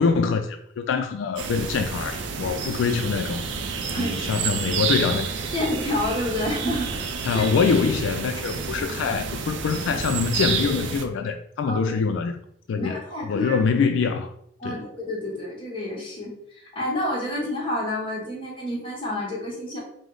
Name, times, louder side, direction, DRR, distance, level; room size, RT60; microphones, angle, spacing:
voice 1, 0.0-3.4 4.0-5.3 7.2-12.3 12.7-14.3 14.6-14.8, left 5 dB, 80° left, 0.3 m, -24 dB
sound 1, 1.4-11.0, right 5 dB, 75° right, 0.5 m, -29 dB
voice 2, 5.5-7.4 11.6-12.0 12.7-13.6 14.6-19.8, left 1 dB, 25° left, 1.0 m, -29 dB
5.0 x 2.0 x 3.8 m
head